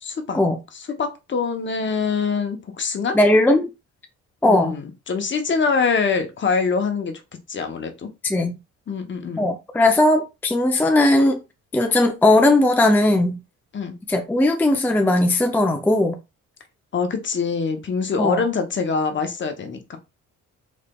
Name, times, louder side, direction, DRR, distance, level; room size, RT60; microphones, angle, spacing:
voice 1, 0.0-0.4 0.7-3.2 4.5-7.2 7.5-8.1 8.9-9.5 13.7-13.9 16.9-20.0, left 5 dB, 40° left, 0.8 m, -24 dB
voice 2, 3.1-3.7 4.4-4.7 8.2-8.5 9.4-11.4 11.7-13.4 14.1-16.2 18.2-18.4, left 2 dB, 5° left, 0.5 m, -18 dB
4.1 x 3.2 x 2.3 m
cardioid pair, 90°, 30 cm